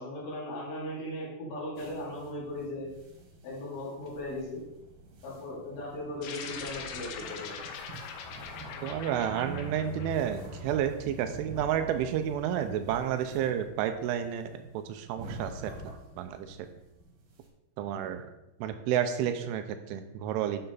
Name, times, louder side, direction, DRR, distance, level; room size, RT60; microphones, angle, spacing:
voice 1, 0.0-2.9 3.4-4.6 5.2-7.6, left 1 dB, 45° left, -9 dB, 4.0 m, -38 dB
sound 1, 1.8-17.5, right 1 dB, 60° right, 2.6 m, -46 dB
sound 2, 6.2-10.9, left 6 dB, 80° left, 2.7 m, -42 dB
voice 2, 8.8-16.6 17.8-18.3 18.6-20.7, right 10 dB, 80° right, 8 dB, 2.9 m, -31 dB
10.0 x 6.5 x 4.0 m, 0.90 s
omnidirectional pair, 5.9 m